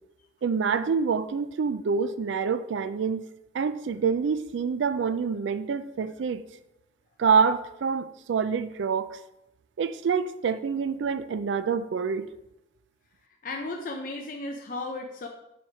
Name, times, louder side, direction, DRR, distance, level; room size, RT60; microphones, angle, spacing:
voice 1, 0.4-3.2 3.5-6.5 7.2-9.2 9.8-12.3, right 6 dB, 85° right, 13 dB, 0.4 m, -26 dB
voice 2, 13.4-15.3, left 2 dB, 45° left, 2 dB, 0.5 m, -34 dB
7.0 x 4.5 x 4.9 m, 0.89 s
head